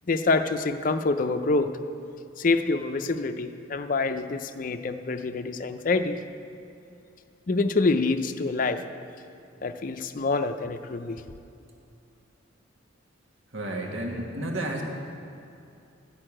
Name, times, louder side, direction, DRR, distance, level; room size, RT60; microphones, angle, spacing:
voice 1, 0.1-1.8 2.4-6.2 7.5-8.8 9.6-11.2, left 3 dB, 40° left, 8 dB, 0.5 m, -26 dB
voice 2, 13.5-14.8, right 1 dB, 75° right, 0 dB, 1.7 m, -31 dB
12.5 x 6.5 x 8.8 m, 2.6 s
head